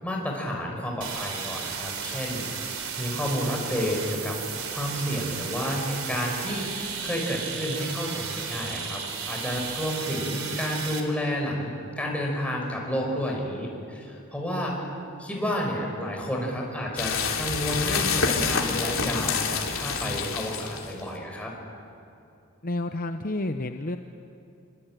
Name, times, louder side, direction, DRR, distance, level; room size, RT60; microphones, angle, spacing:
voice 1, 0.0-14.9 15.2-21.5, equal, 5° left, -1 dB, 5.6 m, -31 dB
sound 1, 1.0-11.0, right 6 dB, 80° right, 3.6 m, -34 dB
sound 2, 17.0-21.0, left 5 dB, 70° left, 3.4 m, -27 dB
voice 2, 22.6-24.0, left 2 dB, 45° left, 7 dB, 0.8 m, -30 dB
26.5 x 24.0 x 9.1 m, 2.7 s
head